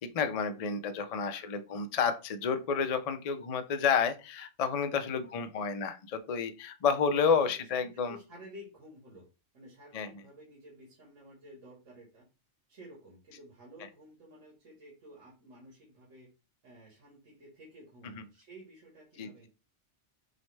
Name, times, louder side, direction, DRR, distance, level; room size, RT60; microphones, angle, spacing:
voice 1, 0.0-8.2 9.9-10.1 18.0-18.2 19.2-19.3, left 6 dB, 55° left, 8 dB, 0.4 m, -30 dB
voice 2, 7.4-9.3 9.5-12.3 12.7-16.3 16.6-19.5, equal, 80° right, -5 dB, 1.9 m, -53 dB
6.3 x 2.1 x 3.3 m, 0.30 s
omnidirectional pair, 1.3 m